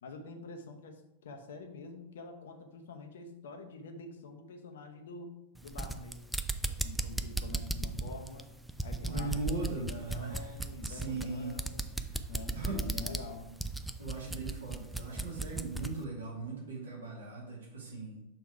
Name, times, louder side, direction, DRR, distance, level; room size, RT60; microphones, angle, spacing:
voice 1, 0.0-5.3 5.6-6.2 6.7-8.5 8.8-11.8 12.3-13.5, left 3 dB, 60° left, 5 dB, 0.7 m, -47 dB
sound 1, 5.6-16.0, right 2 dB, 5° right, 0.4 m, -36 dB
voice 2, 9.0-10.6 10.8-11.5 12.0-12.2 12.5-12.8 14.0-18.2, right 3 dB, 65° right, -2 dB, 1.7 m, -39 dB
6.4 x 3.4 x 4.6 m, 0.90 s
figure-of-eight pair, 90°, 0 cm